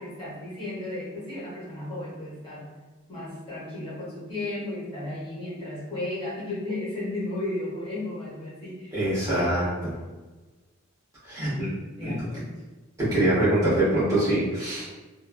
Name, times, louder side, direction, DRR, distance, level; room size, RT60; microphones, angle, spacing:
voice 1, 0.0-2.7 3.1-9.8 11.4-11.7 12.0-12.5, left 2 dB, 25° left, -10 dB, 1.3 m, -34 dB
voice 2, 8.9-9.9 11.2-11.7 12.0-12.1 13.0-15.1, right 1 dB, 15° right, -11 dB, 1.3 m, -24 dB
3.2 x 2.3 x 2.2 m, 1.2 s
head